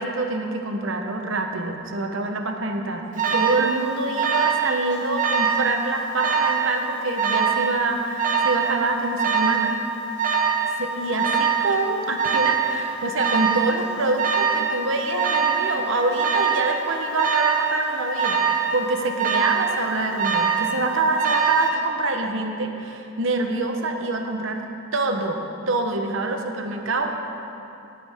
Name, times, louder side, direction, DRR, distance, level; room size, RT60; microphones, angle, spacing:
voice 1, 0.0-9.7 10.8-24.6 24.9-27.2, right 2 dB, 65° right, 4 dB, 1.0 m, -26 dB
Alarm, 3.2-3.6 4.2-4.6 4.9-5.6 6.2-6.6 7.2-7.6 8.2-8.6 9.2-9.6 10.2-10.6 11.2-11.6 12.2-12.6 13.2-13.6 14.2-14.6 15.2-15.6 16.2-16.6 17.2-17.6 18.2-18.6 19.2-19.6 20.2-20.7 21.2-21.7, right 6 dB, 40° right, 1.3 m, -22 dB
17.5 x 8.7 x 3.6 m, 2.9 s
head